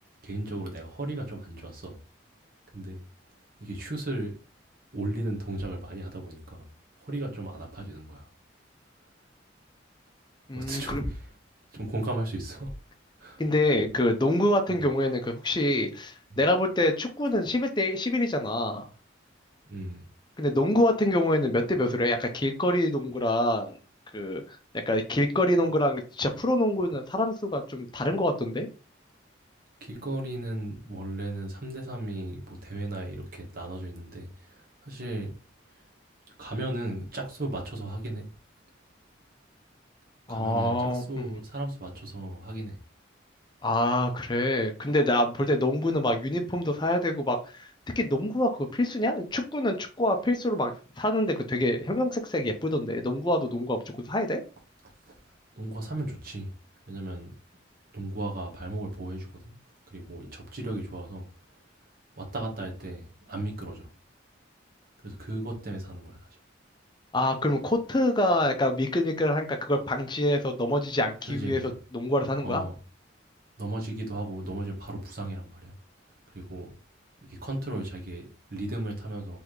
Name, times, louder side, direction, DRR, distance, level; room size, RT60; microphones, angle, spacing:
voice 1, 0.2-2.0 2.7-3.0 3.6-4.3 4.9-6.7 7.0-8.3 10.5-11.3 11.7-12.7 13.2-13.4 14.7-14.8 16.3-16.4 19.7-20.1 29.8-35.4 35.7-35.8 36.4-38.3 40.3-42.8 55.0-55.2 55.6-56.5 56.9-57.3 57.9-59.5 59.9-61.3 62.1-63.9 65.0-66.3 71.3-71.7 72.4-72.8 73.6-75.7 76.3-76.7 77.2-79.4, right 1 dB, 50° right, 1.2 m, -35 dB
voice 2, 10.5-11.0 13.4-18.9 20.4-23.7 24.1-24.6 24.9-28.7 40.3-41.2 43.6-47.7 48.0-53.8 54.1-54.4 67.1-71.6 71.9-72.6, left 1 dB, 25° left, 0.6 m, -26 dB
4.1 x 3.4 x 3.1 m
head